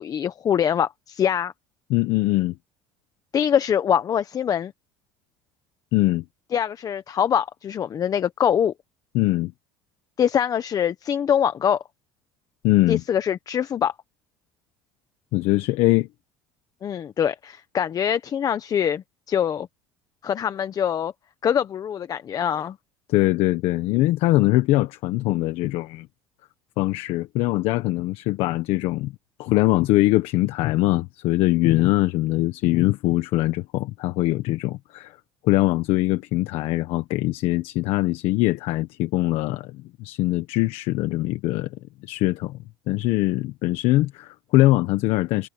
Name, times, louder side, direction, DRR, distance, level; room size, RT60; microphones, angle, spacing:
voice 1, 0.0-1.5 3.3-4.7 6.5-8.7 10.2-11.8 12.9-13.9 16.8-19.7 20.2-21.1 21.4-22.8, left 8 dB, 35° left, 1.0 m, -23 dB
voice 2, 1.9-2.5 5.9-6.2 9.1-9.5 12.6-13.0 15.3-16.1 22.5-22.7 23.1-26.1 26.8-29.1 29.4-35.1 35.4-41.7 42.0-42.6 42.9-45.5, left 18 dB, 70° left, 1.4 m, -22 dB
supercardioid pair, 115°, 10 cm